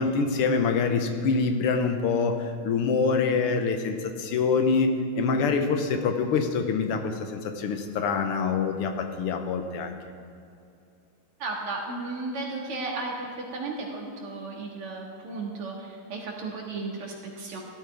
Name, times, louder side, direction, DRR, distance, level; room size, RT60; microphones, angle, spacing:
voice 1, 0.0-10.0, left 5 dB, 90° left, 6 dB, 1.9 m, -25 dB
voice 2, 11.4-17.6, right 3 dB, 90° right, -1 dB, 2.8 m, -34 dB
16.0 x 12.5 x 3.5 m, 2.5 s
omnidirectional pair, 2.4 m